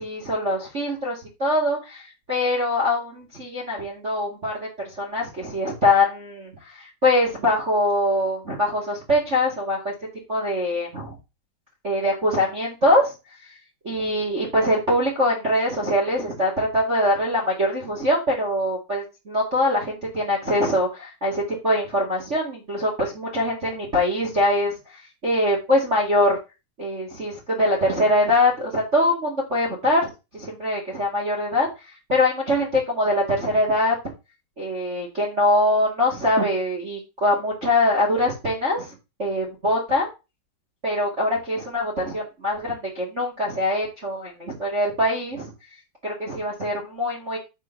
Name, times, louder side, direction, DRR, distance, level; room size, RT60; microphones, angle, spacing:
voice 1, 0.0-4.7 5.0-9.9 10.3-11.2 11.8-13.1 13.8-26.4 26.8-30.1 30.3-33.9 34.6-40.1 40.8-45.5 46.0-47.4, left 1 dB, 30° right, -2 dB, 1.3 m, -23 dB
8.1 x 4.4 x 5.9 m, 0.27 s
omnidirectional pair, 5.0 m